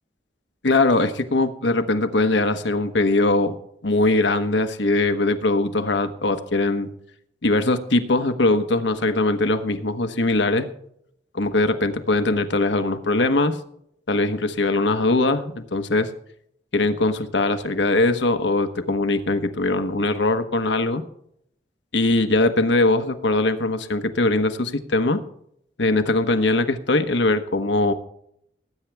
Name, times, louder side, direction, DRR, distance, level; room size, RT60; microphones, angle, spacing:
voice 1, 0.6-3.5 3.8-6.9 7.4-10.7 11.3-13.6 14.1-16.1 16.7-21.0 21.9-25.2 25.8-27.9, left 2 dB, 90° left, 9 dB, 1.1 m, -21 dB
19.5 x 9.0 x 3.4 m, 0.71 s
head